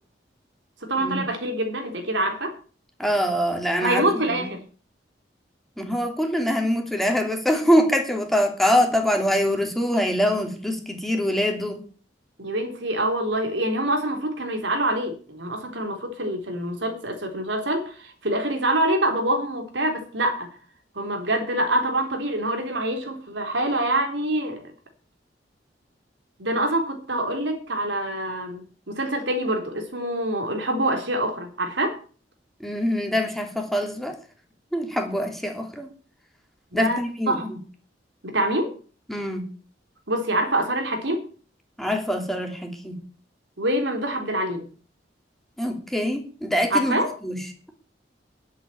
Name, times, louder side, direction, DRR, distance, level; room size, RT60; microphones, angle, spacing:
voice 1, 0.8-2.5 3.8-4.6 12.4-20.5 21.0-24.6 26.4-32.0 36.7-37.0 37.3-37.4 38.2-38.8 40.1-41.2 43.6-44.7 46.7-47.1, right 1 dB, 85° right, 4 dB, 3.8 m, -25 dB
voice 2, 3.0-4.5 5.8-11.8 32.6-34.2 34.7-35.9 36.7-37.6 39.1-39.4 41.8-43.0 45.6-47.5, equal, ahead, 3 dB, 2.7 m, -24 dB
10.5 x 8.0 x 9.1 m, 0.40 s
head